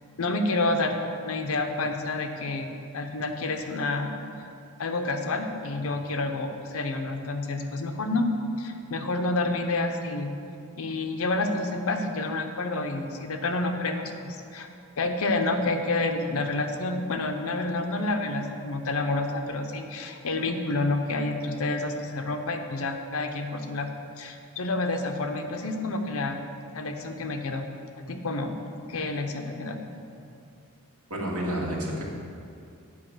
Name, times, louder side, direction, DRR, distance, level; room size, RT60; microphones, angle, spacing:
voice 1, 0.2-4.1 4.8-8.3 8.6-10.3 10.8-14.7 15.0-23.9 24.2-26.4 26.7-27.6 28.0-28.6 28.9-29.8, left 2 dB, 70° left, 5 dB, 0.7 m, -29 dB
voice 2, 31.1-32.0, right 1 dB, 85° right, -3 dB, 1.7 m, -29 dB
8.7 x 4.9 x 6.2 m, 2.5 s
head